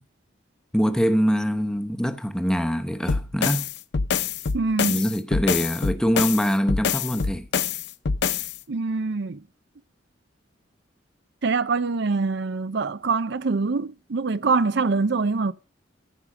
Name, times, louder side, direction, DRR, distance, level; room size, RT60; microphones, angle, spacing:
voice 1, 0.7-3.7 4.9-7.5, equal, 5° left, 0.8 m, -24 dB
sound 1, 3.1-8.6, left 6 dB, 60° left, 0.6 m, -26 dB
voice 2, 4.5-5.0 8.7-9.4 11.4-15.5, right 4 dB, 60° right, 0.6 m, -24 dB
14.5 x 5.1 x 6.0 m
head